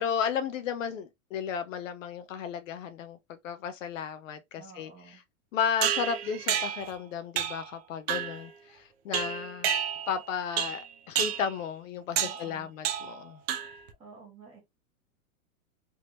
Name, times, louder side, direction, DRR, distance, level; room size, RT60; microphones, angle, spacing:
voice 1, 0.0-4.9 5.5-9.7 10.1-13.4, left 7 dB, 60° left, 0.6 m, -34 dB
voice 2, 4.6-5.2 12.2-12.7 14.0-14.6, right 4 dB, 15° right, 1.1 m, -50 dB
sound 1, 5.8-6.9 7.4-7.7 8.1-8.4 9.1-10.2 10.6-10.9 11.2-11.5 12.2-12.5 12.8-13.2 13.5-13.9, right 9 dB, 45° right, 0.5 m, -30 dB
3.4 x 2.7 x 2.7 m
supercardioid pair, 175°, 44 cm